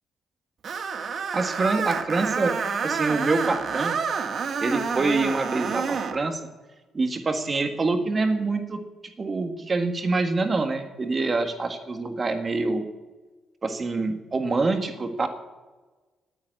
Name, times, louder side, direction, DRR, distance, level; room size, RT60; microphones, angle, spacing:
Screech, 0.6-6.2, right 5 dB, 55° right, 1.3 m, -28 dB
voice 1, 1.3-2.5 2.8-4.0 4.6-6.5 6.9-8.8 9.2-12.9 13.6-15.3, right 3 dB, 35° right, 6 dB, 1.7 m, -25 dB
9.4 x 9.3 x 9.1 m, 1.3 s
cardioid pair, 90°, 0 cm